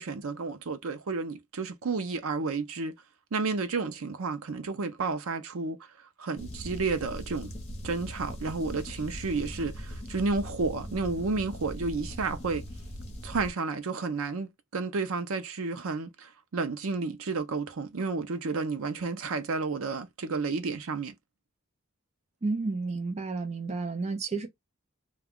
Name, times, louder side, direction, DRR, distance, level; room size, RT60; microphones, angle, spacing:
voice 1, 0.0-2.9 3.3-5.9 6.2-7.5 7.8-12.6 13.2-21.1, right 4 dB, 75° right, 0.6 m, -31 dB
sound 1, 6.4-13.5, equal, 30° left, 0.9 m, -40 dB
voice 2, 22.4-24.5, right 3 dB, 30° right, 0.5 m, -31 dB
2.3 x 2.2 x 3.5 m
head